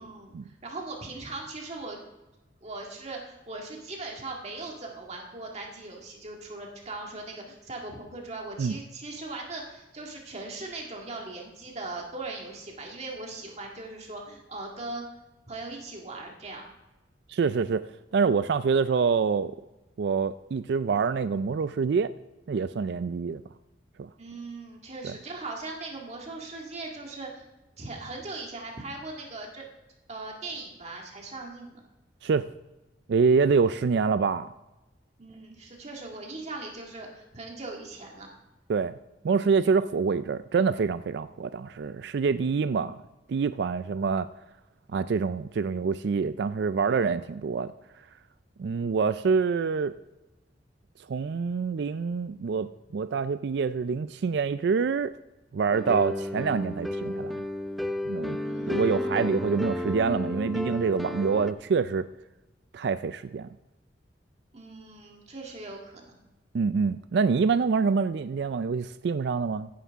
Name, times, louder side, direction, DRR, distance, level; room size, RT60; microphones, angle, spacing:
voice 1, 0.0-2.0 2.6-15.0 15.5-16.6 24.2-27.4 27.8-29.7 30.1-31.8 35.2-38.3 58.4-59.0 64.5-66.1, right 2 dB, 40° right, 0 dB, 1.8 m, -39 dB
voice 2, 17.3-17.9 18.1-19.6 20.0-22.1 22.5-23.4 24.0-24.1 25.0-25.1 32.2-32.5 33.1-34.5 38.7-38.9 39.2-43.0 43.3-44.3 44.9-47.7 48.6-49.9 51.1-55.1 55.5-57.4 58.1-58.4 58.7-62.1 62.7-63.5 66.5-69.7, right 5 dB, 65° right, 13 dB, 0.4 m, -26 dB
sound 1, 55.7-61.5, left 1 dB, ahead, 0.6 m, -32 dB
15.5 x 9.4 x 3.5 m, 1.0 s
head